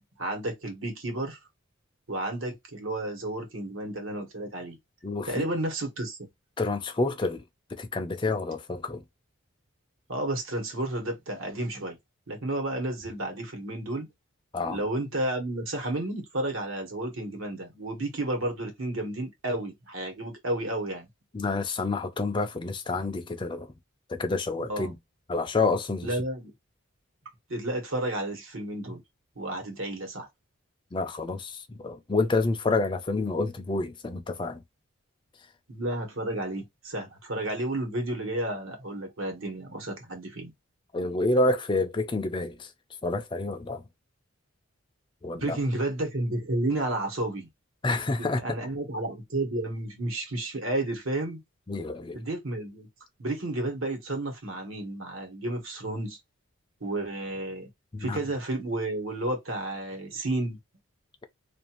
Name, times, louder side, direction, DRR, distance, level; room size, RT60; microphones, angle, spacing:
voice 1, 0.2-1.4 2.1-4.8 5.3-6.3 10.1-12.0 12.3-14.1 14.7-21.1 24.6-24.9 26.0-26.5 27.5-29.0 29.4-30.3 35.7-40.5 45.4-47.5 48.2-51.4 52.1-52.9 53.2-56.2 56.8-57.7 58.0-60.6, right 1 dB, 70° right, 1.2 m, -31 dB
voice 2, 5.0-5.4 6.6-7.4 7.7-9.0 14.5-14.8 21.3-23.7 24.1-25.0 25.3-26.2 30.9-34.6 40.9-42.7 43.0-43.8 45.2-45.6 47.8-48.4 51.7-52.2 57.9-58.2, left 3 dB, 20° left, 0.4 m, -28 dB
2.5 x 2.4 x 2.8 m
head